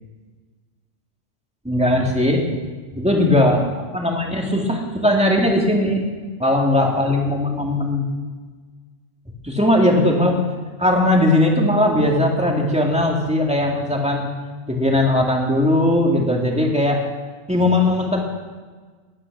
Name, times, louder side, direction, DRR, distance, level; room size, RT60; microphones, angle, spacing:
voice 1, 1.6-2.4 2.9-3.6 3.9-6.0 6.4-8.1 9.4-10.4 10.8-14.3 14.7-17.0 17.5-18.2, left 1 dB, 5° right, -1 dB, 2.3 m, -18 dB
19.0 x 9.9 x 6.1 m, 1.4 s
omnidirectional pair, 1.4 m